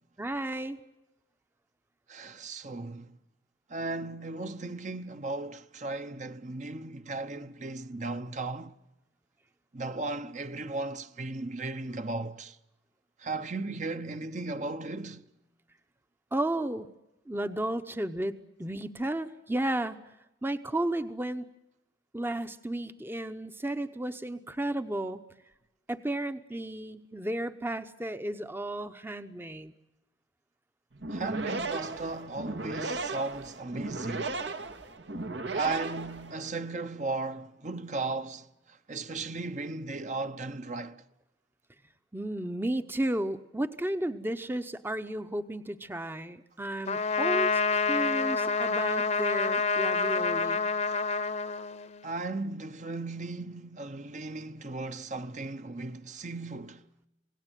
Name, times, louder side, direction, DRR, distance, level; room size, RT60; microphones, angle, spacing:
voice 1, 0.2-0.8 16.3-16.9 17.3-20.0 20.4-21.5 22.1-25.2 25.9-29.7 42.1-50.7, right 1 dB, 15° right, 0.8 m, -33 dB
voice 2, 2.1-3.1 3.7-8.7 9.7-12.6 13.2-15.3 31.1-34.4 35.5-38.5 38.9-41.0 50.9-51.0 52.0-56.8, right 3 dB, 45° right, 0.9 m, -36 dB
sound 1, 30.9-36.7, right 3 dB, 80° right, 1.9 m, -36 dB
Trumpet, 46.9-52.1, left 4 dB, 40° left, 0.9 m, -28 dB
27.0 x 18.0 x 9.1 m
head